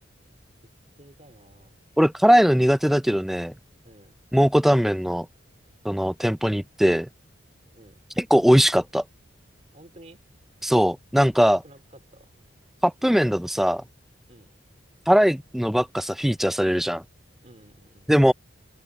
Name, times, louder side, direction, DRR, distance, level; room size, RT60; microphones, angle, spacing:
voice 1, 1.0-1.7 3.8-4.1 7.7-8.0 9.7-10.2 11.5-12.4 14.3-14.5 17.4-18.1, right 1 dB, 35° right, 2.5 m, -51 dB
voice 2, 2.0-3.5 4.3-5.3 5.8-7.1 8.2-9.0 10.6-11.6 12.8-13.8 15.1-17.0 18.1-18.3, equal, ahead, 0.3 m, -20 dB
head